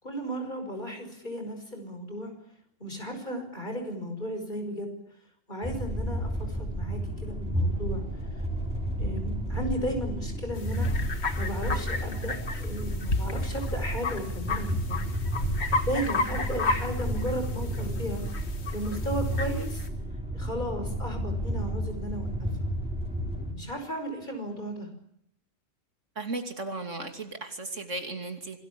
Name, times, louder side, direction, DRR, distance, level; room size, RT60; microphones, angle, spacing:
voice 1, 0.0-2.3 2.8-4.9 5.5-8.0 9.0-10.9 11.4-15.1 15.9-18.2 18.7-19.8 20.3-22.5 23.5-24.9, equal, 35° left, 5 dB, 5.8 m, -35 dB
sound 1, 5.6-23.5, right 1 dB, 5° right, 5.7 m, -32 dB
sound 2, 7.7-16.6, equal, 75° left, 5.8 m, -38 dB
sound 3, 10.6-19.9, left 3 dB, 55° left, 1.9 m, -34 dB
voice 2, 26.1-28.6, right 3 dB, 70° right, 6 dB, 3.1 m, -35 dB
26.5 x 19.5 x 8.6 m, 0.70 s
omnidirectional pair, 1.3 m